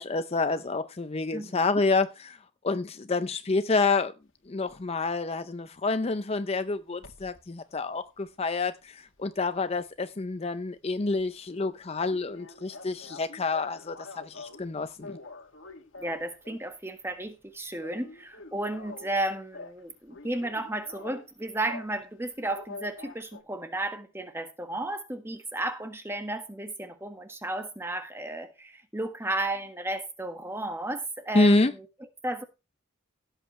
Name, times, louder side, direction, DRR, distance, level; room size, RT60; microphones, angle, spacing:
voice 1, 0.0-2.4 2.6-4.1 4.5-15.2 31.3-31.7, left 3 dB, 30° left, 0.5 m, -28 dB
voice 2, 1.3-1.6 16.0-31.9 32.2-32.4, right 1 dB, 10° right, 1.5 m, -33 dB
sound 1, 4.7-4.9 7.0-7.4 7.9-10.0 10.3-10.5 10.8-10.9 11.2-11.3 11.5-11.6 12.1-14.7 15.0-16.8 17.1-17.4 17.7-19.8 20.1-22.0 22.5-23.4, left 3 dB, 65° left, 2.1 m, -46 dB
16.5 x 8.1 x 3.2 m
head